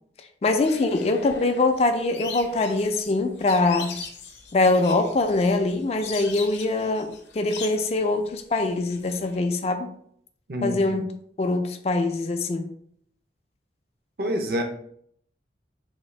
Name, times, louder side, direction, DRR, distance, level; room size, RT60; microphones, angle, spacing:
voice 1, 0.4-3.9 4.5-9.9 10.6-11.0 11.4-12.7, left 2 dB, 35° left, 7 dB, 0.3 m, -23 dB
sound 1, 0.6-9.4, left 5 dB, 85° left, 0.6 m, -41 dB
voice 2, 10.5-11.0 14.2-14.6, equal, 60° right, 4 dB, 0.6 m, -27 dB
3.6 x 2.5 x 3.1 m, 0.66 s
head